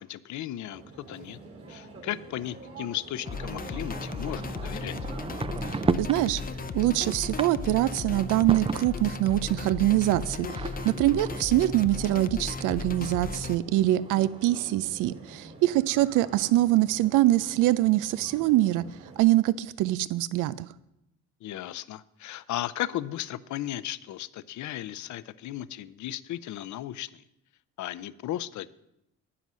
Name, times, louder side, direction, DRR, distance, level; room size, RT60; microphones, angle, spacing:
voice 1, 0.0-1.4 1.7-5.0 21.4-27.2 27.8-28.7, left 13 dB, 70° left, 17 dB, 0.6 m, -35 dB
sound 1, 0.7-19.2, right 3 dB, 50° right, 3.3 m, -48 dB
sound 2, 3.2-6.2 6.7-9.3 10.1-12.7 13.3-13.4 13.6-13.7 13.9-14.8, right 4 dB, 20° right, 0.4 m, -35 dB
sound 3, 3.3-13.6, left 4 dB, 30° left, 0.6 m, -36 dB
voice 2, 5.6-6.4 6.7-18.8 19.2-20.7, right 15 dB, 90° right, 18 dB, 0.5 m, -24 dB
9.8 x 9.3 x 6.2 m, 0.85 s
cardioid pair, 90°, 30 cm